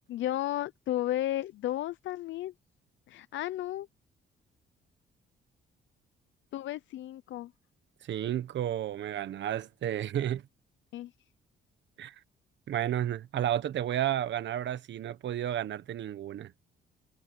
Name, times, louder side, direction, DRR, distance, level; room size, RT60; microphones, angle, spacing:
voice 1, 0.1-2.5 3.1-3.9 6.5-7.5 10.9-11.1, left 13 dB, 75° left, 0.6 m, -33 dB
voice 2, 8.1-10.4 12.0-12.1 12.7-16.5, right 11 dB, 65° right, 1.2 m, -32 dB
cardioid pair, 90°, 20 cm